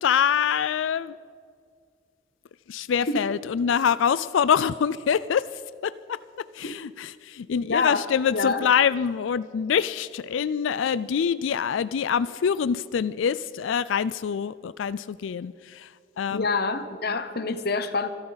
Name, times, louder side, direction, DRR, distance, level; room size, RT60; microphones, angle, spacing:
voice 1, 0.0-1.2 2.7-15.9 16.2-16.5, left 7 dB, 75° left, 16 dB, 0.4 m, -25 dB
voice 2, 7.6-8.0 8.3-8.6 16.3-18.1, left 4 dB, 50° left, 10 dB, 0.9 m, -26 dB
25.0 x 13.0 x 4.0 m, 2.2 s
head